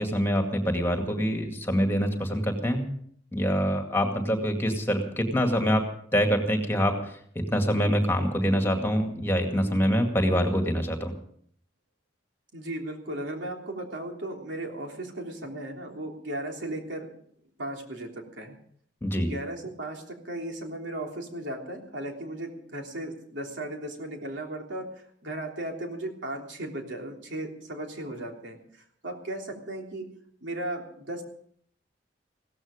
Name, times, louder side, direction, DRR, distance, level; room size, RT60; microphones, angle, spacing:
voice 1, 0.0-2.9 3.3-5.8 6.1-7.1 7.5-11.1 19.0-19.3, equal, 15° left, 4 dB, 2.1 m, -25 dB
voice 2, 12.5-17.1 17.6-18.6 19.1-30.1 30.4-31.2, right 1 dB, 75° right, 1 dB, 3.3 m, -36 dB
16.5 x 14.5 x 5.1 m, 0.63 s
head